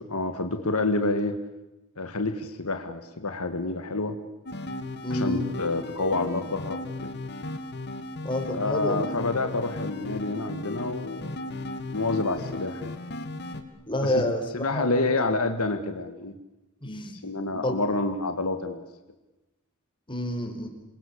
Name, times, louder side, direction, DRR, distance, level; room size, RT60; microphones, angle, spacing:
voice 1, 0.1-1.4 2.0-4.2 5.1-7.1 8.5-11.3 11.9-12.9 14.0-14.2 14.5-16.4 17.2-18.8, left 2 dB, 75° left, 7 dB, 1.9 m, -28 dB
sound 1, 4.5-13.6, left 2 dB, 50° left, 2.6 m, -36 dB
voice 2, 5.0-5.5 8.2-9.1 13.9-15.3 16.8-17.2 17.5-17.8 20.1-20.7, left 1 dB, 20° left, 4 dB, 4.8 m, -29 dB
28.0 x 23.0 x 8.7 m, 1.0 s
head